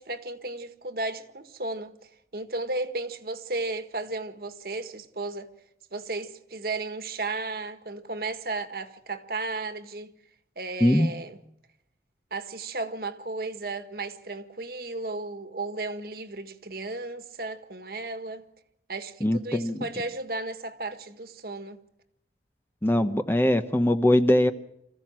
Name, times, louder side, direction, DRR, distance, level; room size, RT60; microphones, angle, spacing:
voice 1, 0.0-5.5 5.9-10.1 10.6-11.4 12.3-18.5 18.9-21.8, right 2 dB, 55° right, 1.6 m, -34 dB
voice 2, 19.2-19.8 22.8-24.5, left 1 dB, 10° left, 0.8 m, -21 dB
26.5 x 15.0 x 7.5 m
head